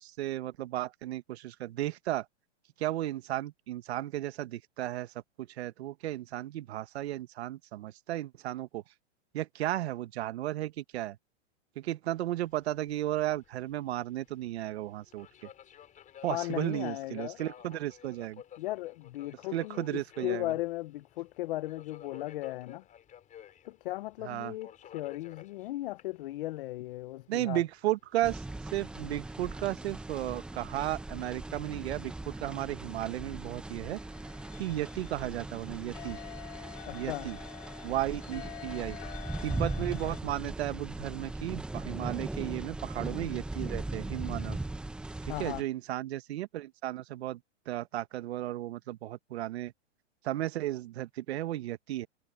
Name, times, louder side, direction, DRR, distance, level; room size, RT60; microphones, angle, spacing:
voice 1, 0.0-2.2 2.8-5.1 5.4-8.8 9.3-11.2 11.7-15.3 16.2-18.4 19.5-20.5 24.2-24.5 27.3-28.4 28.7-34.0 34.6-36.2 36.9-37.4 37.8-39.0 39.4-44.6 45.2-47.4 47.7-49.7 50.2-52.1, right 14 dB, 55° right, 1.7 m, -34 dB
Subway metro underground, 12.1-30.5, left 10 dB, 20° left, 5.2 m, -54 dB
voice 2, 16.3-17.4 18.6-22.8 23.6-27.6 36.9-37.3 45.3-45.6, left 17 dB, 45° left, 0.9 m, -36 dB
sound 1, 28.2-45.6, right 2 dB, 5° right, 0.8 m, -39 dB
sound 2, 33.8-40.2, left 14 dB, 70° left, 3.4 m, -48 dB
hypercardioid pair, 145°, 37 cm